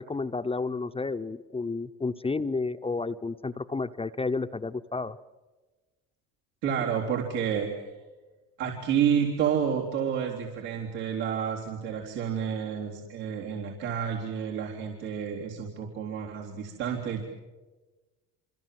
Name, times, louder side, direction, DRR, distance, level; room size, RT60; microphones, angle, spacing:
voice 1, 0.0-5.2, left 3 dB, 15° left, 8 dB, 0.7 m, -31 dB
voice 2, 6.6-7.7 8.6-17.2, right 8 dB, 90° right, -3 dB, 3.9 m, -30 dB
27.0 x 25.5 x 7.7 m, 1.2 s
supercardioid pair, 90°, 34 cm